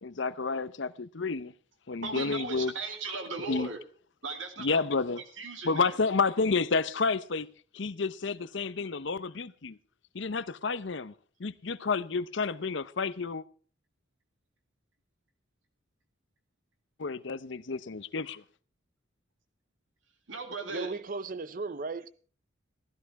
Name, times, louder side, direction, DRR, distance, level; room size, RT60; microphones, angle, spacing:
voice 1, 0.0-1.5 1.9-2.7 3.5-3.7 4.6-5.2 5.6-9.8 10.1-11.1 11.4-13.4 17.0-18.4, left 4 dB, 65° left, 0.7 m, -30 dB
voice 2, 2.0-3.8 4.2-4.8 5.2-6.0 20.3-21.0, right 3 dB, 75° right, 2.3 m, -37 dB
voice 3, 20.7-22.1, right 4 dB, 45° right, 0.6 m, -36 dB
16.0 x 13.5 x 4.7 m
head